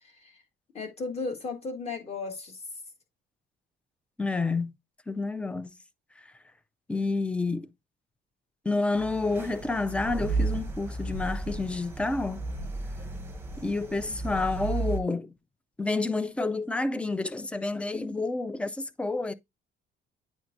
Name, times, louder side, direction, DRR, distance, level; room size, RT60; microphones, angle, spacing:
voice 1, 0.0-0.4 0.7-2.6, left 3 dB, 30° left, 1.7 m, -35 dB
voice 2, 4.2-4.8 5.1-5.7 6.9-7.7 8.7-12.4 13.6-15.3 15.8-19.3, left 3 dB, 5° left, 0.3 m, -29 dB
sound 1, 8.9-15.0, right 3 dB, 10° right, 0.9 m, -33 dB
9.6 x 4.5 x 2.6 m
cardioid pair, 180°, 21 cm